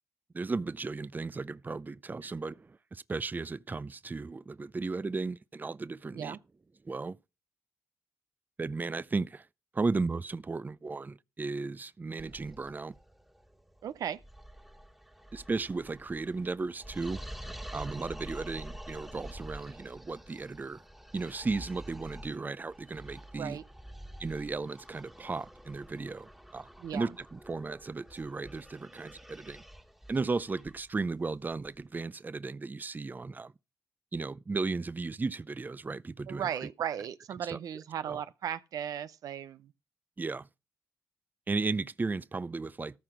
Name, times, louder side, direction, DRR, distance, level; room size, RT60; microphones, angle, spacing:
voice 1, 0.3-6.4 6.8-7.2 8.6-9.5 9.7-13.0 15.3-17.2 17.7-20.8 21.1-23.6 24.2-29.6 30.1-33.5 34.1-36.7 37.5-37.6 38.1-38.2 40.2-40.5 41.5-43.0, right 3 dB, 30° right, 0.5 m, -35 dB
sound 1, 12.2-31.8, equal, 5° right, 1.5 m, -48 dB
voice 2, 13.8-14.2 23.3-23.6 26.8-27.2 36.3-39.7, right 9 dB, 85° right, 0.5 m, -36 dB
14.0 x 5.9 x 4.9 m
cardioid pair, 55°, 6 cm